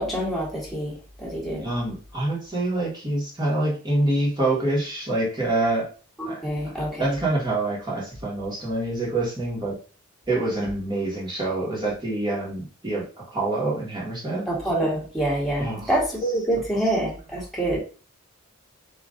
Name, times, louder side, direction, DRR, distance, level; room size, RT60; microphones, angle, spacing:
voice 1, 0.0-1.7 6.2-7.2 14.5-17.8, right 1 dB, ahead, -5 dB, 1.7 m, -26 dB
voice 2, 1.6-5.8 6.3-6.4 7.0-9.7 10.3-14.4 15.6-15.8, right 2 dB, 20° right, -4 dB, 1.7 m, -26 dB
3.8 x 3.0 x 3.7 m, 0.37 s
head